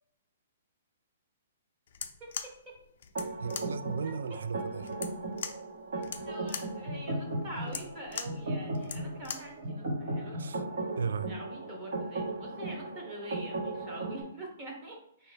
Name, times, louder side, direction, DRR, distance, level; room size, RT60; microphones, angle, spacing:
sound 1, 1.9-9.6, left 7 dB, 55° left, 0.4 m, -42 dB
voice 1, 2.2-2.7 4.0-4.1 6.3-10.4 11.3-15.3, right 1 dB, 20° right, -1 dB, 1.0 m, -45 dB
sound 2, 3.1-14.2, right 2 dB, 65° right, 1.5 m, -36 dB
voice 2, 3.4-5.0 10.3-10.6 11.0-11.3, right 5 dB, 85° right, 12 dB, 0.3 m, -36 dB
4.1 x 2.8 x 3.3 m, 0.73 s
hypercardioid pair, 165°, 0 cm